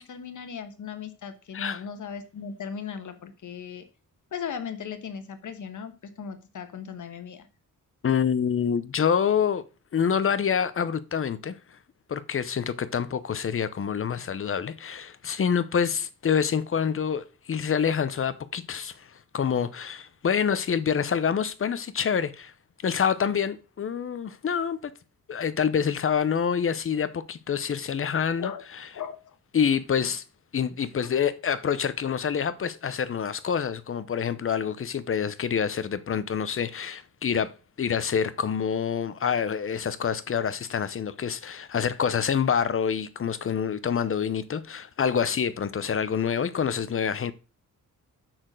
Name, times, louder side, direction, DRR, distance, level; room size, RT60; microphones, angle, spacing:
voice 1, 0.0-3.8 4.3-7.5 28.4-28.6 28.9-29.3 31.0-31.2 46.4-46.5, left 7 dB, 60° left, 1.3 m, -37 dB
voice 2, 8.0-9.6 9.9-11.6 12.1-22.5 22.8-24.9 25.3-28.5 29.5-30.2 30.5-37.5 37.8-47.3, left 7 dB, 40° left, 0.7 m, -27 dB
6.7 x 5.9 x 6.2 m
wide cardioid pair, 140°, 34 cm